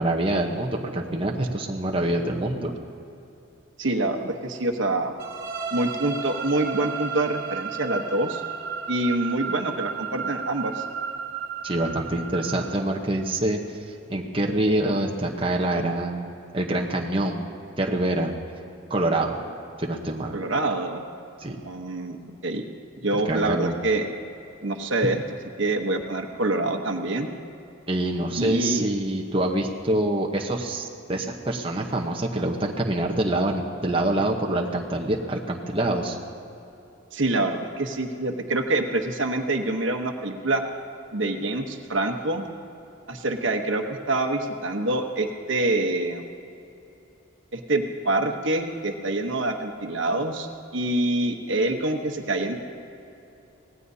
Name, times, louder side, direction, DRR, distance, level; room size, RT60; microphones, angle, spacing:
voice 1, 0.0-2.7 11.6-16.3 16.5-17.5 17.8-18.3 18.9-19.4 19.8-20.4 21.4-21.6 23.1-23.7 27.9-36.2, right 1 dB, 25° right, 0 dB, 0.9 m, -26 dB
voice 2, 3.8-5.1 5.7-8.4 8.9-10.8 20.3-21.0 21.6-22.6 23.0-24.1 24.6-25.2 25.6-27.3 28.4-28.8 37.1-40.6 41.1-42.4 43.1-46.2 47.5-50.5 50.7-52.6, right 2 dB, 65° right, 4 dB, 1.1 m, -26 dB
sound 1, 5.2-13.0, right 6 dB, 45° right, 2.0 m, -33 dB
25.0 x 18.0 x 2.8 m, 2.8 s
head